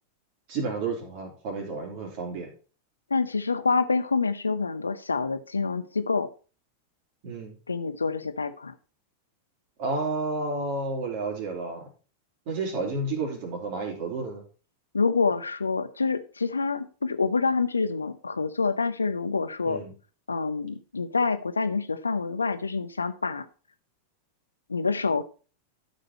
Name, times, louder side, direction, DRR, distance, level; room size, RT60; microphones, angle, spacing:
voice 1, 0.5-2.5 7.2-7.6 9.8-11.8 12.5-14.4 19.6-19.9, right 3 dB, 45° right, 2 dB, 3.3 m, -31 dB
voice 2, 3.1-6.3 7.7-8.7 14.9-19.8 20.3-23.4 24.7-25.2, left 4 dB, 75° left, 12 dB, 0.8 m, -27 dB
12.5 x 5.3 x 4.3 m, 0.36 s
figure-of-eight pair, 90°, 0 cm